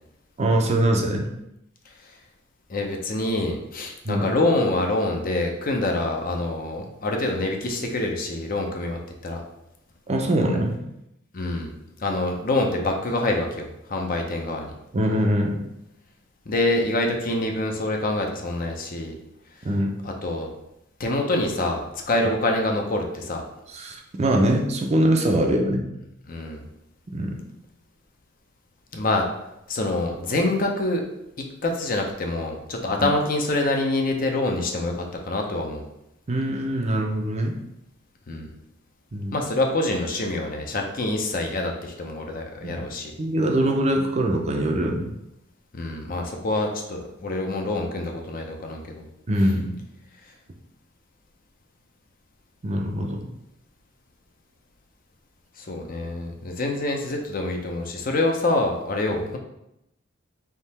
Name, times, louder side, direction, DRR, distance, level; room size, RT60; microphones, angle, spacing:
voice 1, 0.4-1.3 4.0-4.3 10.1-10.8 14.9-15.6 19.6-19.9 23.7-25.9 27.1-27.3 36.3-37.5 39.1-39.4 42.6-42.8 43.2-45.1 49.3-49.7 52.6-53.2, right 1 dB, 35° right, 2 dB, 0.5 m, -23 dB
voice 2, 2.7-9.4 11.3-11.7 12.0-14.7 16.5-19.1 20.0-20.5 21.0-23.4 26.3-26.6 28.9-29.3 29.7-31.0 31.6-35.8 38.3-38.5 39.3-43.1 45.7-49.0 55.6-59.4, left 2 dB, 45° left, 2 dB, 0.6 m, -26 dB
3.6 x 2.8 x 4.2 m, 0.84 s
head